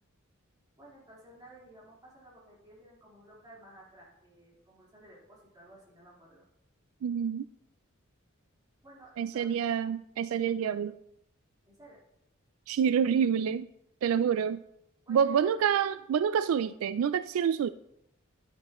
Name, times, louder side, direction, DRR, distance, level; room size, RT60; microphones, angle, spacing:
voice 1, 0.8-6.5 8.8-9.8 11.7-12.0 15.1-15.7, right 1 dB, 20° right, -6 dB, 4.0 m, -55 dB
voice 2, 7.0-7.5 9.2-11.0 12.7-13.7 14.0-14.6 15.1-17.7, right 7 dB, 75° right, 14 dB, 0.3 m, -27 dB
11.0 x 9.9 x 3.0 m, 0.80 s
head